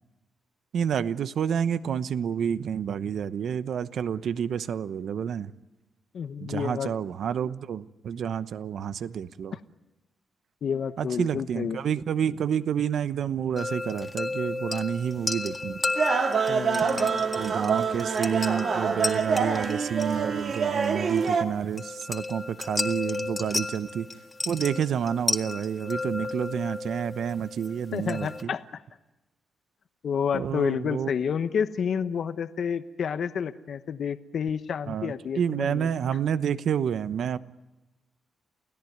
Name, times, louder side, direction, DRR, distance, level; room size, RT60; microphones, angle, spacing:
voice 1, 0.7-5.5 6.4-9.5 11.0-15.8 17.4-24.1 24.5-28.5 30.3-31.1 34.9-37.4, right 8 dB, 70° right, 14 dB, 0.9 m, -29 dB
voice 2, 6.1-6.9 9.5-9.6 10.6-11.8 16.5-17.3 27.9-28.8 30.0-35.9, left 7 dB, 60° left, 10 dB, 1.0 m, -30 dB
sound 1, 13.6-28.4, left 3 dB, 20° left, 1.9 m, -34 dB
sound 2, 16.0-21.4, right 5 dB, 50° right, 1.9 m, -26 dB
29.0 x 17.0 x 9.4 m, 1.0 s
cardioid pair, 125°, 0 cm